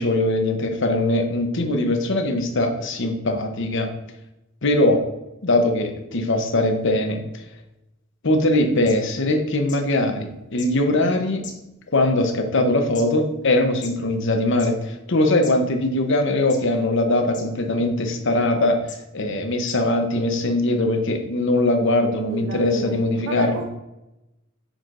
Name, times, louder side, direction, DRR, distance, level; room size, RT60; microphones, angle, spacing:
voice 1, 0.0-3.9 4.6-5.0 5.4-7.4 8.2-11.4 11.9-18.8 19.1-23.6, left 1 dB, 65° left, 5 dB, 1.0 m, -21 dB
sound 1, 8.5-8.6 8.9-9.0 9.7-9.8 10.6-10.7 11.4-11.9 12.6-13.0 13.8-13.9 14.5-14.7 15.4-15.5 16.5-16.8 17.3-17.4 18.2-18.3 18.9-19.0 19.6-19.8 20.6-20.7, left 5 dB, 40° left, 1.4 m, -38 dB
voice 2, 22.3-23.7, right 3 dB, 60° right, 0 dB, 0.8 m, -32 dB
6.5 x 6.3 x 2.6 m, 0.92 s
head